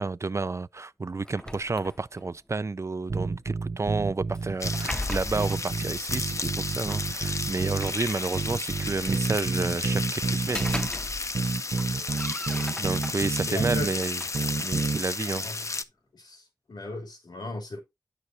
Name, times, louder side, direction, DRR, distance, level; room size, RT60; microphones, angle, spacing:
voice 1, 0.0-10.6 12.5-14.2 14.6-15.5, right 3 dB, 45° right, 0.4 m, -31 dB
sound 1, 1.2-2.4 4.3-5.7 6.9-7.0 7.6-8.7 10.2-11.5 11.8-13.4 13.9-15.5, left 1 dB, 10° left, 0.7 m, -38 dB
sound 2, 3.1-4.9 5.3-8.0 8.3-10.9 11.3-13.9 14.3-15.0, right 4 dB, 70° right, 0.7 m, -30 dB
sound 3, 4.6-15.8, left 3 dB, 45° left, 0.6 m, -33 dB
voice 2, 13.5-14.0 15.2-15.6 16.1-17.8, left 2 dB, 90° left, 3.2 m, -37 dB
9.5 x 6.5 x 2.7 m
cardioid pair, 45°, 7 cm